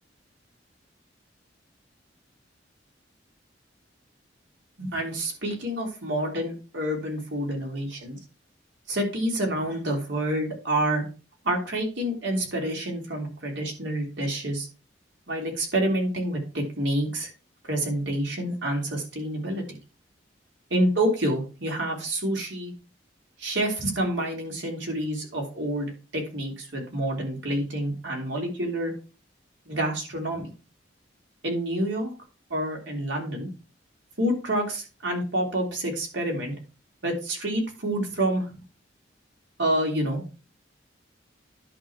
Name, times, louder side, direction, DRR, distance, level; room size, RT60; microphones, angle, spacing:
voice 1, 4.8-8.2 8.9-11.0 11.4-14.7 15.3-17.3 17.6-19.8 20.7-22.7 23.4-28.9 29.7-30.5 31.4-32.1 32.5-33.5 34.2-36.5 37.0-38.5 39.6-40.2, right 1 dB, 75° right, 0 dB, 3.5 m, -28 dB
11.0 x 4.0 x 6.1 m, 0.33 s
head